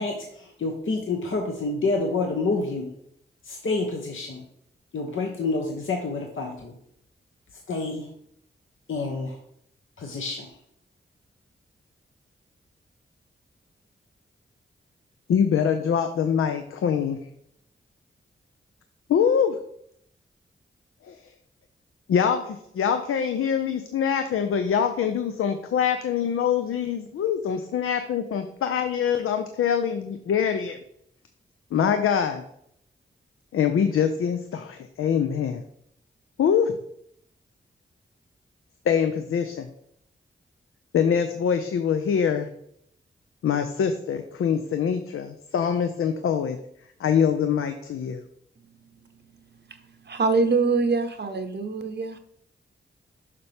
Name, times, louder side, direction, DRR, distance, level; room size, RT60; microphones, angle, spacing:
voice 1, 0.0-2.9 3.4-4.4 4.9-6.7 7.7-8.1 8.9-9.4 10.0-10.5, left 3 dB, 70° left, 1.0 m, -28 dB
voice 2, 15.3-17.2 19.1-19.6 21.1-21.2 22.1-30.8 31.7-32.4 33.5-35.6 36.4-36.8 38.9-39.7 40.9-42.5 43.4-46.6 47.0-48.2, left 7 dB, 85° left, 0.5 m, -24 dB
voice 3, 50.1-52.2, right 4 dB, 55° right, 0.8 m, -24 dB
6.7 x 5.8 x 3.4 m
cardioid pair, 45°, 21 cm